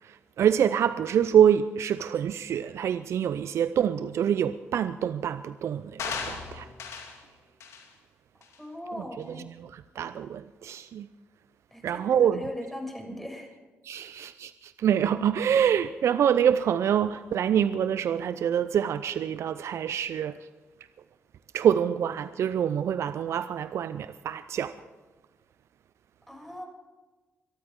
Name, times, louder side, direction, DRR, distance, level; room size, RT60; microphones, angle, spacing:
voice 1, 0.4-6.7 9.6-11.1 11.8-12.4 13.8-20.3 21.5-24.7, right 9 dB, 70° right, 0.5 m, -25 dB
sound 1, 6.0-7.2 7.6-7.9 8.4-8.6, left 5 dB, 80° left, 2.3 m, -36 dB
voice 2, 8.6-9.5 11.7-13.5 26.3-26.7, left 1 dB, 5° left, 6.7 m, -39 dB
24.0 x 13.5 x 3.7 m
supercardioid pair, 50°, 5 cm